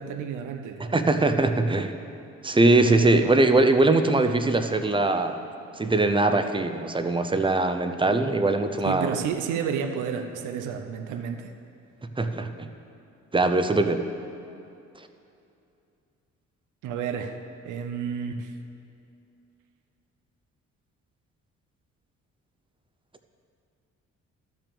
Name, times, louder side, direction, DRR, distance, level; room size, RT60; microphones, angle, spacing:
voice 1, 0.0-0.8 8.8-11.5 16.8-17.4 17.6-18.5, right 7 dB, 85° right, 6 dB, 0.7 m, -31 dB
voice 2, 0.8-1.9 2.4-5.4 5.8-9.1 12.2-12.7 13.3-14.0, right 2 dB, 15° right, 8 dB, 0.6 m, -21 dB
12.0 x 6.1 x 6.9 m, 2.7 s
cardioid pair, 90°, 30 cm